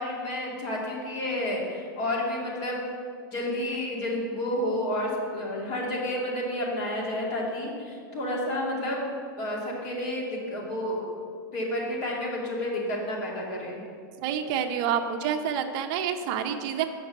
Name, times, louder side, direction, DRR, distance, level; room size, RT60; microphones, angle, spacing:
voice 1, 0.0-2.8 3.3-9.0 9.4-11.1 11.5-13.8, left 1 dB, 45° left, -3 dB, 2.6 m, -30 dB
voice 2, 14.2-16.8, right 8 dB, 35° right, 6 dB, 0.7 m, -28 dB
7.9 x 5.9 x 6.6 m, 2.2 s
supercardioid pair, 155°, 12 cm